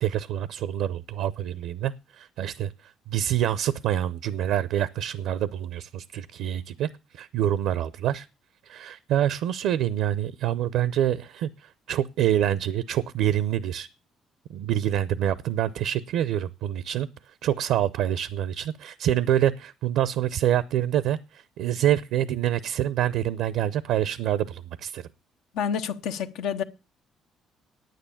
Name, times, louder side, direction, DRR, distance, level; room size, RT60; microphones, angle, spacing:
voice 1, 0.0-2.7 3.1-6.9 7.1-8.3 8.6-13.9 14.5-17.1 17.4-25.1, right 11 dB, 80° right, 0.6 m, -26 dB
voice 2, 25.5-26.6, left 7 dB, 85° left, 1.1 m, -28 dB
9.6 x 9.3 x 7.1 m
supercardioid pair, 80°, 0 cm